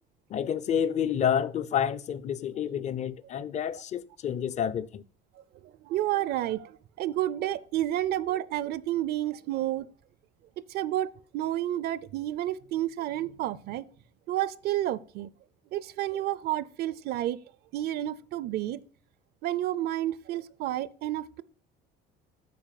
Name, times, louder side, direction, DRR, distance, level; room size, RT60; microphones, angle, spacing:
voice 1, 0.3-5.0, left 8 dB, 40° left, 0.6 m, -29 dB
voice 2, 5.6-9.9 10.7-11.1 11.3-13.9 14.3-15.3 15.7-17.4 17.7-18.8 19.4-21.4, right 13 dB, 65° right, 0.6 m, -30 dB
9.3 x 4.8 x 7.6 m
cardioid pair, 125°, 18 cm